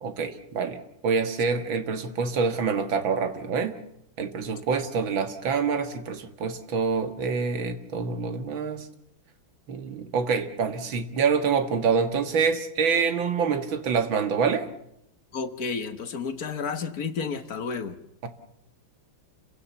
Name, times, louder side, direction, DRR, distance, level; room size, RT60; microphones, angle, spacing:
voice 1, 0.0-3.8 4.2-8.9 9.7-14.7 18.2-18.3, right 5 dB, 65° right, 9 dB, 2.4 m, -26 dB
voice 2, 15.3-18.0, left 5 dB, 50° left, 10 dB, 1.6 m, -31 dB
29.0 x 16.5 x 7.1 m, 0.80 s
omnidirectional pair, 2.3 m